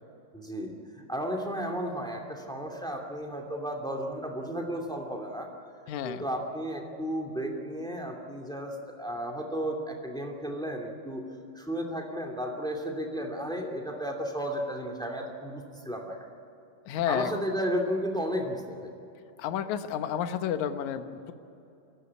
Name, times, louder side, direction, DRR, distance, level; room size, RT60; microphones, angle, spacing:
voice 1, 0.3-0.7 1.1-5.5 6.0-11.3 11.5-16.3 17.1-18.9, equal, ahead, 1 dB, 1.3 m, -33 dB
voice 2, 5.9-6.2 16.9-17.3 19.4-21.3, left 9 dB, 70° left, 8 dB, 1.9 m, -31 dB
24.0 x 17.5 x 9.8 m, 2.8 s
omnidirectional pair, 4.7 m